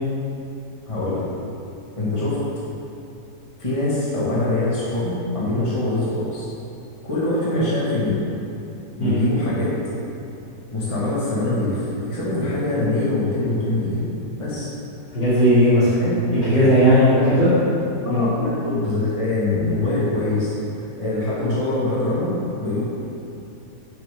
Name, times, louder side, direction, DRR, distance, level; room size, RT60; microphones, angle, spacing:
voice 1, 0.9-1.2 2.0-2.4 3.6-6.5 7.0-8.2 9.0-9.8 10.7-14.0 14.4-14.7 16.0-16.2 17.1-17.3 18.0-22.8, left 2 dB, 15° left, -9 dB, 2.1 m, -23 dB
voice 2, 15.1-15.9 16.3-17.5 18.1-18.3, equal, 80° left, -15 dB, 3.7 m, -16 dB
14.5 x 7.2 x 3.9 m, 2.7 s
omnidirectional pair, 1.9 m